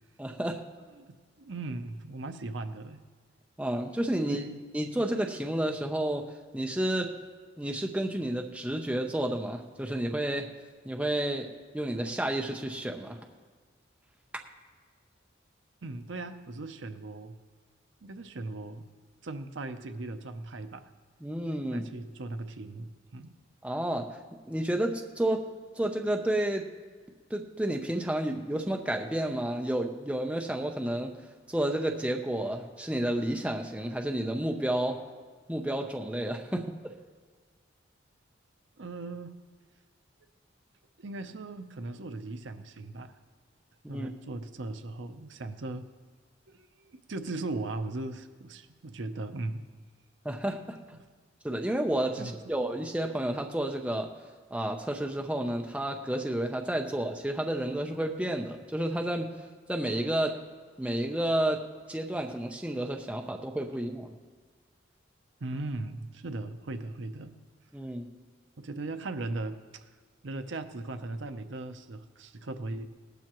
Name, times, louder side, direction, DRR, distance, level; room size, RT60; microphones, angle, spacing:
voice 1, 0.2-0.6 3.6-4.4 4.7-6.2 6.5-7.1 7.6-10.5 10.8-11.5 11.7-13.2 21.2-21.9 23.6-24.1 24.5-25.4 25.8-26.7 27.3-31.1 31.5-35.0 35.5-36.9 43.8-44.1 50.2-50.8 51.4-54.1 54.5-59.3 59.7-60.3 60.8-64.1 67.7-68.1, right 1 dB, 5° right, 2 dB, 0.6 m, -31 dB
voice 2, 1.0-3.0 4.2-4.6 15.8-17.4 18.0-18.9 19.2-20.9 21.6-23.4 38.8-39.4 41.0-43.2 43.9-45.8 46.5-49.6 50.9-51.0 52.2-52.3 65.4-67.3 68.6-69.9 70.2-72.9, right 2 dB, 65° right, 8 dB, 0.7 m, -38 dB
18.5 x 12.0 x 3.0 m, 1.5 s
head